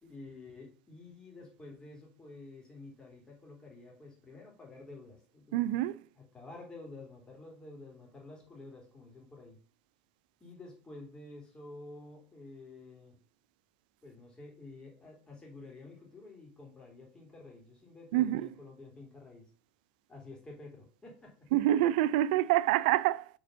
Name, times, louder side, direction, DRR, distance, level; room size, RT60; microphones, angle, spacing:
voice 1, 0.0-5.7 6.2-9.6 10.4-13.2 14.0-19.4 20.1-21.5, left 2 dB, 15° left, 3.2 m, -50 dB
voice 2, 5.5-6.0 18.1-18.5 21.5-23.3, right 14 dB, 75° right, 0.4 m, -26 dB
5.3 x 4.4 x 5.5 m
supercardioid pair, 125°, 5 cm